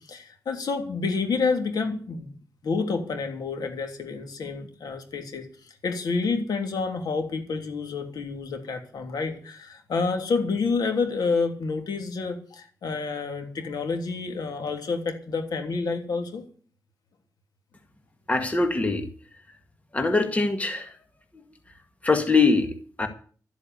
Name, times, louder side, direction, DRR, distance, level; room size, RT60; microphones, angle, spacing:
voice 1, 0.0-2.3 2.6-5.5 5.8-16.4, left 4 dB, 80° left, 5 dB, 3.2 m, -29 dB
voice 2, 18.3-19.1 19.9-20.9 22.0-23.1, left 3 dB, 20° left, 6 dB, 1.9 m, -23 dB
13.5 x 8.3 x 9.5 m, 0.44 s
wide cardioid pair, 135°, 7 cm